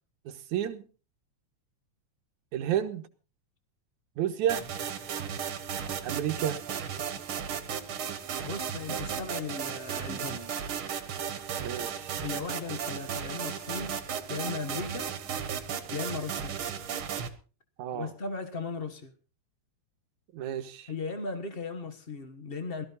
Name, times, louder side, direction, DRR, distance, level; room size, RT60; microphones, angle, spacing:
voice 1, 0.3-0.9 2.5-3.1 4.2-4.7 6.0-6.6 11.6-12.1 17.8-18.1 20.3-20.9, right 10 dB, 85° right, 2.6 m, -31 dB
sound 1, 4.5-17.3, right 8 dB, 55° right, 1.9 m, -35 dB
voice 2, 8.4-10.5 12.2-15.1 15.9-16.6 17.9-19.1 20.9-22.8, left 4 dB, 70° left, 0.5 m, -37 dB
17.0 x 13.5 x 4.1 m
omnidirectional pair, 3.3 m